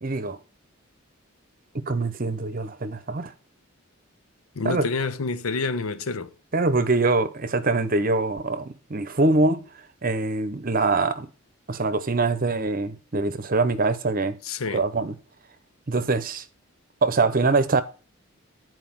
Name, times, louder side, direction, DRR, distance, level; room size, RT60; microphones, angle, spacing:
voice 1, 0.0-0.4 1.7-3.3 4.6-4.9 6.5-9.6 10.0-11.3 11.7-14.4 14.7-15.2 15.9-16.4 17.0-17.8, right 3 dB, 45° right, 0.8 m, -24 dB
voice 2, 4.6-6.3 14.5-14.8, left 4 dB, 90° left, 0.7 m, -28 dB
10.0 x 4.6 x 5.8 m
head